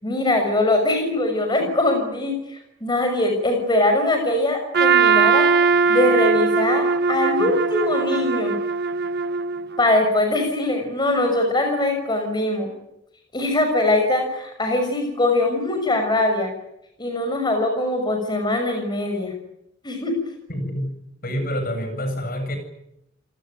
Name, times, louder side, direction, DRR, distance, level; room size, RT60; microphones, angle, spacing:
voice 1, 0.0-5.5 5.9-8.6 9.8-12.7 13.3-16.5 17.0-19.3 19.8-20.1, left 2 dB, 20° left, 4 dB, 6.2 m, -22 dB
Trumpet, 4.7-9.8, right 5 dB, 55° right, 1.1 m, -20 dB
voice 2, 20.5-20.9 21.2-22.6, equal, 50° left, 7 dB, 8.0 m, -27 dB
29.0 x 19.0 x 9.4 m, 0.80 s
head